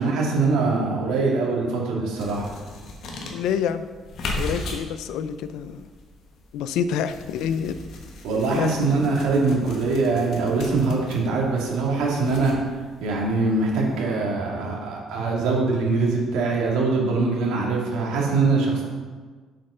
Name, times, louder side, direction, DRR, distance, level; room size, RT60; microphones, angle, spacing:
voice 1, 0.0-2.5 8.2-12.5 13.0-18.8, right 3 dB, 80° right, -2 dB, 2.0 m, -23 dB
sound 1, 2.2-14.0, left 2 dB, 50° left, 1.3 m, -38 dB
voice 2, 3.3-3.8 4.3-5.8 6.5-7.8 8.5-8.8, left 8 dB, 70° left, 11 dB, 0.4 m, -27 dB
7.4 x 5.5 x 5.5 m, 1.5 s
cardioid pair, 170°, 0 cm